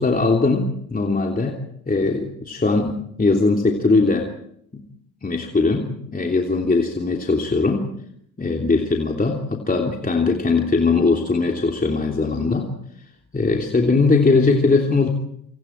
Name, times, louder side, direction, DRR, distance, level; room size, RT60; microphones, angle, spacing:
voice 1, 0.0-1.6 1.9-4.3 4.7-4.8 5.2-7.9 8.4-12.7 13.3-15.1, left 3 dB, 20° left, 2 dB, 3.2 m, -20 dB
27.5 x 26.0 x 4.6 m, 0.71 s
hypercardioid pair, 60°, 42 cm